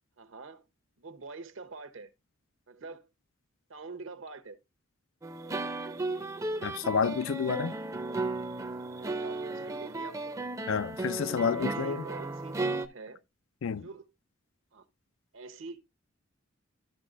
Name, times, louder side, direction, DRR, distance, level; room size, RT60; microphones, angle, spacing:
voice 1, 0.2-0.6 1.0-2.1 2.7-3.1 3.7-4.6 9.0-10.5 11.5-13.2 13.8-14.0 14.7-14.9 15.3-15.8, right 3 dB, 70° right, 1.0 m, -45 dB
sound 1, 5.2-12.9, right 2 dB, 15° right, 0.5 m, -35 dB
voice 2, 6.6-7.8 10.7-12.0 13.6-13.9, left 6 dB, 70° left, 0.4 m, -29 dB
13.0 x 5.6 x 2.5 m
head